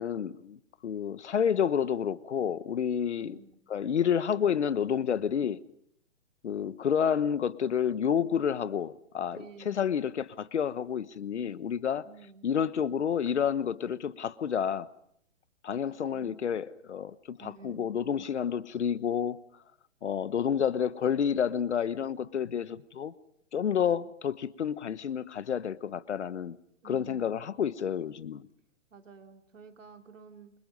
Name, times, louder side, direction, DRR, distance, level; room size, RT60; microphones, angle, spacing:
voice 1, 0.0-3.4 3.7-5.6 6.4-9.4 9.6-12.0 12.4-14.9 15.6-19.4 20.0-23.1 23.5-26.6 26.8-28.4, left 8 dB, 65° left, 1.2 m, -29 dB
voice 2, 3.2-3.6 9.3-9.8 12.0-12.5 15.8-16.4 17.4-18.3 26.8-27.3 28.9-30.5, right 5 dB, 75° right, 3.5 m, -51 dB
29.0 x 24.0 x 5.3 m
hypercardioid pair, 170°, 38 cm